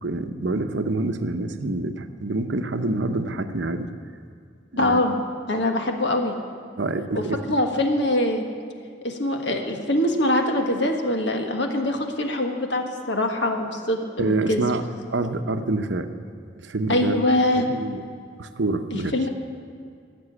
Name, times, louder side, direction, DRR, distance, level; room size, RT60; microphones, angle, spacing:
voice 1, 0.0-3.9 4.7-5.0 6.8-7.4 14.2-14.8 15.1-16.1 16.6-17.1 17.6-18.0 18.4-19.2, right 2 dB, 70° right, 8 dB, 0.8 m, -26 dB
voice 2, 4.8-5.1 5.5-6.3 7.1-7.2 7.5-8.4 9.0-14.6 16.9-17.7 18.9-19.3, left 1 dB, 65° left, 4 dB, 1.5 m, -23 dB
15.0 x 6.9 x 9.9 m, 2.3 s
head